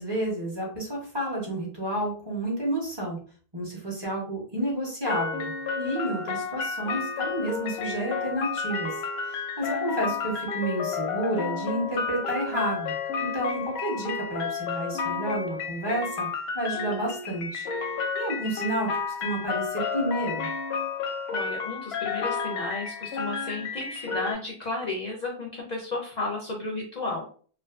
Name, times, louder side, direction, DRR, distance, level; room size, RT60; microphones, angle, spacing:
voice 1, 0.0-3.2 3.5-8.9 9.3-12.9 13.2-16.3 16.5-17.7 18.1-20.5, right 1 dB, 30° right, -3 dB, 0.7 m, -30 dB
sound 1, 5.0-24.3, left 5 dB, 85° left, 0.8 m, -31 dB
voice 2, 21.3-27.2, left 2 dB, 55° left, 0 dB, 0.5 m, -33 dB
2.4 x 2.4 x 2.3 m, 0.43 s
omnidirectional pair, 1.0 m